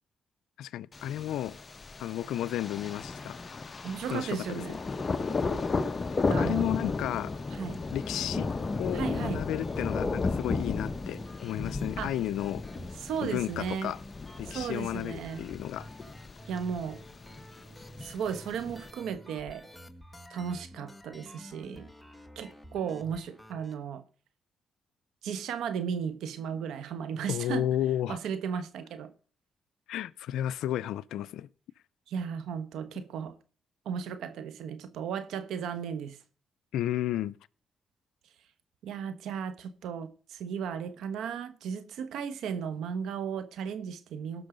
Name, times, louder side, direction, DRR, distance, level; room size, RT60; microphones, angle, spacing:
voice 1, 0.6-1.6 2.0-3.4 4.1-4.8 6.4-7.3 7.9-8.5 8.8-12.6 13.2-14.0 14.4-15.9 27.3-28.2 29.9-31.5 36.7-37.4, left 12 dB, 90° left, 0.5 m, -32 dB
Thunder, 0.9-18.9, left 4 dB, 40° left, 0.9 m, -34 dB
voice 2, 3.8-4.8 6.3-6.7 7.5-7.8 8.9-9.4 12.0-12.1 13.0-13.9 14.5-15.5 16.5-17.0 18.0-19.7 20.3-21.9 22.4-24.0 25.2-27.7 28.1-29.1 32.1-33.4 33.8-36.2 38.8-44.5, right 7 dB, 85° right, 1.2 m, -35 dB
sound 1, 7.8-23.7, equal, ahead, 1.7 m, -50 dB
17.5 x 6.3 x 5.1 m
cardioid pair, 70°, 0 cm